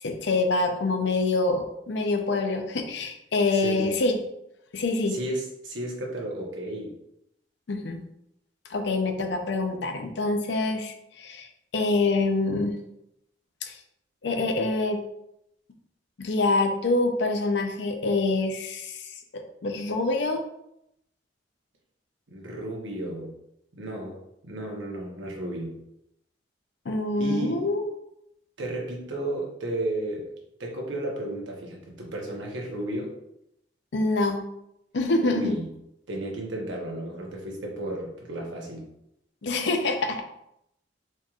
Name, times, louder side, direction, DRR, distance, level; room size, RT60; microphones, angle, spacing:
voice 1, 0.0-4.2 4.7-5.1 7.7-8.0 8.7-11.5 11.7-12.8 13.6-13.7 14.2-15.0 16.2-19.1 19.3-20.4 26.9-27.9 33.9-34.4 34.9-35.6 39.4-40.2, left 2 dB, 65° left, 5 dB, 0.5 m, -26 dB
voice 2, 3.5-3.9 5.1-6.9 22.3-23.3 23.7-24.2 24.4-25.8 27.2-27.7 28.6-30.3 30.6-33.1 35.2-35.7 36.1-38.8, right 1 dB, 85° right, -1 dB, 1.0 m, -33 dB
4.4 x 3.0 x 2.4 m, 0.81 s
head